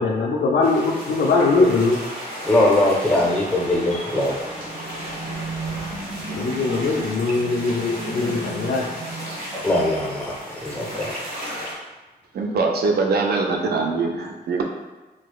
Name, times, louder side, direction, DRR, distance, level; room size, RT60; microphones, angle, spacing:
voice 1, 0.0-2.0 6.3-8.8, left 3 dB, 85° left, -4 dB, 0.4 m, -21 dB
sound 1, 0.6-11.8, equal, 55° right, 1.3 m, -34 dB
voice 2, 2.4-4.3 9.6-11.1, left 1 dB, 5° left, -5 dB, 0.5 m, -21 dB
sound 2, 4.3-10.6, right 3 dB, 35° right, 0.8 m, -36 dB
voice 3, 12.3-14.6, right 4 dB, 70° right, 1 dB, 0.5 m, -22 dB
4.5 x 2.0 x 2.3 m, 1.2 s
wide cardioid pair, 150°, 17 cm